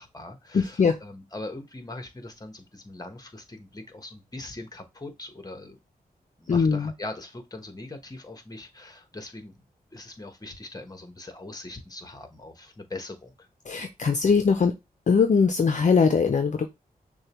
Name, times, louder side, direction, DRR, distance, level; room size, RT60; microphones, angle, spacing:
voice 1, 0.0-5.8 6.4-9.6 9.9-13.5, left 2 dB, 25° left, 1.1 m, -41 dB
voice 2, 0.5-1.0 6.5-6.9 13.7-14.7 15.1-16.7, left 5 dB, 50° left, 0.6 m, -21 dB
6.3 x 2.2 x 3.0 m
cardioid pair, 65°, 16 cm